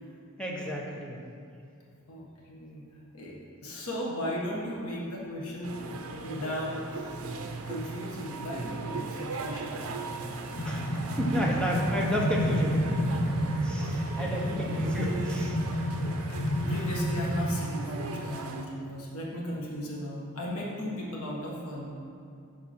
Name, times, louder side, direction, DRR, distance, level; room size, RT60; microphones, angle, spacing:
voice 1, 0.4-1.2 10.6-10.8 11.2-13.2 13.6-15.6, equal, 5° left, -3 dB, 1.1 m, -31 dB
voice 2, 2.1-2.9 3.1-3.4 3.6-5.8 6.2-7.3 7.7-9.9 13.9-14.2 16.6-22.0, equal, 90° left, -3 dB, 1.4 m, -36 dB
sound 1, 5.6-18.6, right 3 dB, 75° right, 0.7 m, -38 dB
sound 2, 10.1-17.6, equal, 40° left, 1.1 m, -30 dB
7.7 x 6.0 x 4.4 m, 2.4 s
head